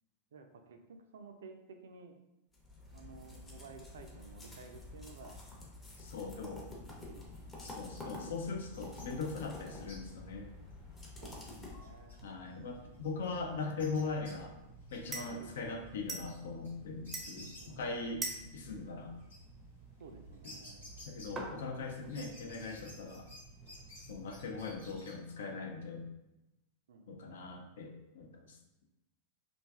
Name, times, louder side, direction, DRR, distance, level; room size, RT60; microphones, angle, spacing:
voice 1, 0.3-2.2 2.9-5.4 6.2-6.5 6.9-7.9 9.7-9.9 11.2-12.2 15.3-15.6 17.4-18.5 20.0-20.8 26.9-27.6, right 4 dB, 60° right, 5 dB, 0.3 m, -54 dB
sound 1, 2.5-12.3, left 2 dB, 15° left, 0.7 m, -49 dB
voice 2, 6.0-6.7 7.6-10.5 12.2-14.5 14.9-18.3 18.5-19.2 21.1-23.3 24.0-26.1 27.1-28.6, left 4 dB, 60° left, 4 dB, 0.4 m, -40 dB
sound 2, 7.4-21.8 22.1-25.1, left 1 dB, 75° left, 1.1 m, -57 dB
sound 3, 12.2-25.0, right 2 dB, 15° right, 0.6 m, -48 dB
3.1 x 2.4 x 2.3 m, 0.95 s
figure-of-eight pair, 90°, 0 cm